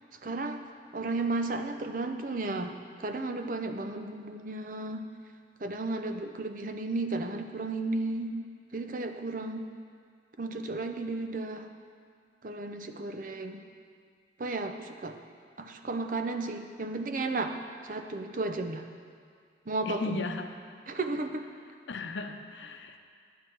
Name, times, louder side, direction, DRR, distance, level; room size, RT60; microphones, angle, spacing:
voice 1, 0.2-0.7 0.9-5.0 5.6-8.4 8.7-9.6 10.4-11.7 12.4-13.6 14.4-15.2 15.6-17.5 17.8-18.8 19.7-20.2 20.9-21.5, right 2 dB, 45° right, 6 dB, 0.7 m, -33 dB
voice 2, 19.9-20.5 21.9-23.0, left 3 dB, 85° left, 6 dB, 0.7 m, -36 dB
11.0 x 9.9 x 4.6 m, 2.1 s
head